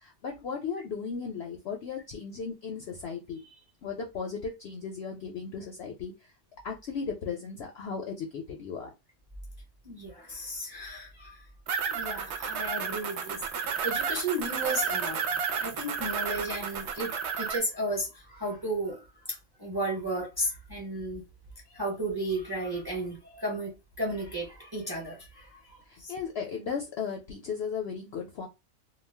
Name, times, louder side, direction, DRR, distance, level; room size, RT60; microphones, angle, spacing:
voice 1, 0.0-6.3 6.6-8.9 25.9-28.5, left 6 dB, 65° left, 0.6 m, -36 dB
voice 2, 9.8-11.4 11.9-15.2 15.6-21.2 21.7-26.1, right 1 dB, 20° right, 0.6 m, -34 dB
sound 1, 11.7-17.6, right 6 dB, 65° right, 0.7 m, -32 dB
2.4 x 2.1 x 3.3 m
omnidirectional pair, 1.5 m